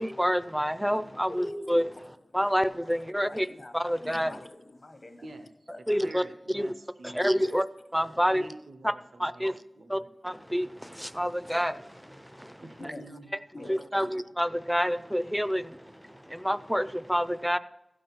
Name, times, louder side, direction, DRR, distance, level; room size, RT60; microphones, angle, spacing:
voice 1, 0.0-1.8 2.3-3.5 3.7-4.4 5.9-6.7 7.0-7.6 7.9-8.4 8.8-8.9 9.2-9.6 9.9-12.6 12.8-12.9 13.7-17.6, equal, ahead, 0.4 m, -28 dB
voice 2, 1.3-1.8 2.4-2.6 3.2-3.7 4.0-5.2 5.7-5.8 7.4-7.7 12.9-13.0 13.5-13.9, left 1 dB, 55° left, 1.0 m, -43 dB
voice 3, 5.8-7.3 8.3-9.5 9.7-10.1 12.6-14.1, right 2 dB, 90° right, 0.8 m, -47 dB
15.0 x 6.2 x 4.5 m
wide cardioid pair, 75°, 0 cm